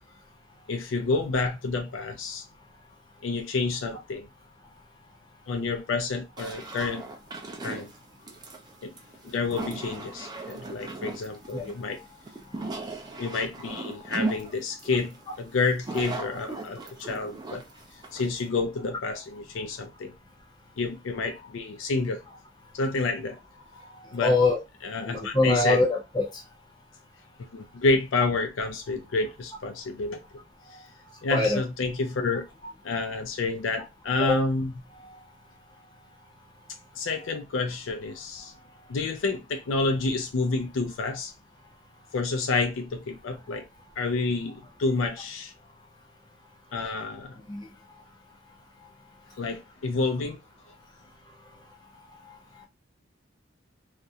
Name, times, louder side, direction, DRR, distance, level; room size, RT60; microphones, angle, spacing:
voice 1, 0.7-2.4 3.2-4.3 5.5-7.0 7.6-7.9 8.8-8.9 9.2-12.0 13.2-17.6 18.1-20.1 20.8-22.2 22.7-23.4 24.1-24.4 24.8-25.8 27.5-30.2 31.2-32.4 32.8-34.7 36.9-38.5 38.9-41.3 42.1-43.7 44.0-45.5 46.7-47.4 49.4-50.4, left 3 dB, 75° left, 0.4 m, -29 dB
sound 1, 6.4-18.5, right 3 dB, 20° right, 0.4 m, -37 dB
voice 2, 24.2-24.6 25.1-26.3 31.3-31.6 34.3-34.4 47.5-47.6, left 2 dB, 20° left, 0.7 m, -23 dB
2.4 x 2.1 x 2.7 m
head